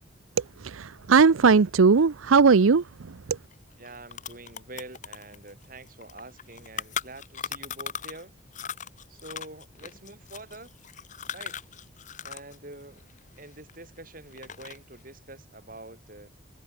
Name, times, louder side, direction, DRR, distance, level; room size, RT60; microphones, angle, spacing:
voice 1, 0.4-3.4, right 5 dB, 80° right, 0.6 m, -20 dB
sound 1, 3.5-3.6 3.8-8.2 8.5-12.6 12.8-14.0 14.3-14.9, left 8 dB, 35° left, 1.1 m, -38 dB
voice 2, 3.8-8.3 9.1-10.7 11.3-11.6 12.2-13.0 13.4-16.3, right 2 dB, 40° right, 7.7 m, -46 dB
head